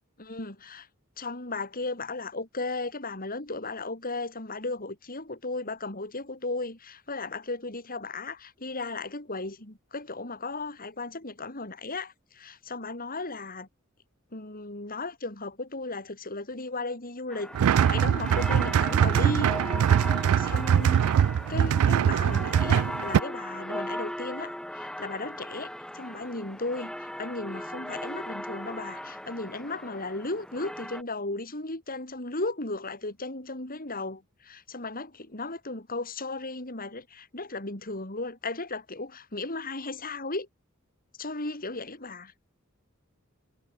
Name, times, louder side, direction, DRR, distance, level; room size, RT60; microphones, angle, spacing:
voice 1, 0.2-0.9 1.2-13.7 14.3-19.6 20.2-21.2 21.5-40.5 41.2-42.3, left 2 dB, 45° left, 5.7 m, -35 dB
sound 1, 17.3-31.0, equal, 5° left, 1.9 m, -38 dB
sound 2, 17.5-23.2, right 8 dB, 90° right, 0.3 m, -22 dB
head